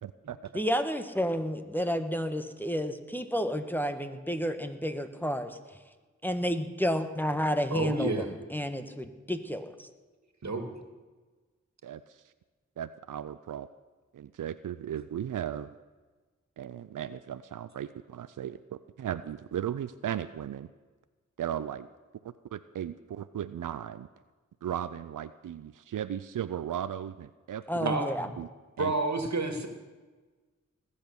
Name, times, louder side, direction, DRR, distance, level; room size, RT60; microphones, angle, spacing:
voice 1, 0.0-0.4 11.8-12.2 12.8-13.7 14.1-15.7 16.6-20.7 21.4-21.9 22.2-24.1 24.6-27.9 28.4-28.5 28.8-28.9, right 10 dB, 90° right, 13 dB, 0.5 m, -36 dB
voice 2, 0.5-5.6 6.2-9.9 27.7-28.3, equal, 5° left, 8 dB, 1.4 m, -31 dB
voice 3, 7.7-8.3 10.4-10.6 27.9-28.3 28.8-29.7, right 2 dB, 60° right, 6 dB, 2.1 m, -29 dB
19.5 x 8.4 x 7.0 m, 1.3 s
cardioid pair, 45°, 31 cm